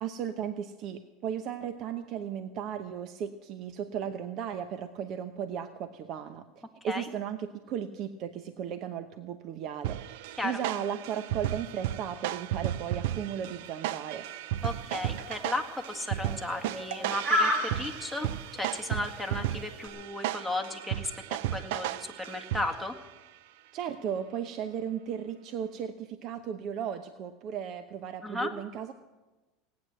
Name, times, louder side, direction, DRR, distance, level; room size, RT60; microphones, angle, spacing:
voice 1, 0.0-6.4 6.8-14.3 23.7-28.9, right 8 dB, 50° right, 9 dB, 0.8 m, -36 dB
sound 1, 9.8-23.0, right 13 dB, 75° right, 0.4 m, -35 dB
voice 2, 14.6-22.9 28.2-28.5, left 2 dB, ahead, 6 dB, 1.8 m, -35 dB
sound 2, 14.6-19.9, left 1 dB, 30° right, 3.2 m, -32 dB
17.5 x 9.5 x 7.6 m, 1.2 s
supercardioid pair, 115°, 0 cm